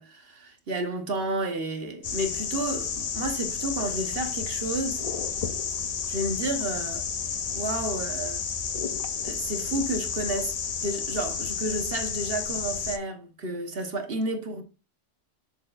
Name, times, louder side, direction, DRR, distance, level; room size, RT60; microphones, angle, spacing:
voice 1, 0.0-5.0 6.1-7.0 7.5-8.4 9.2-10.5 10.8-14.6, right 1 dB, 55° right, 1.3 m, -31 dB
sound 1, 2.0-13.0, left 6 dB, 45° left, 0.5 m, -31 dB
6.8 x 6.7 x 2.5 m
omnidirectional pair, 1.2 m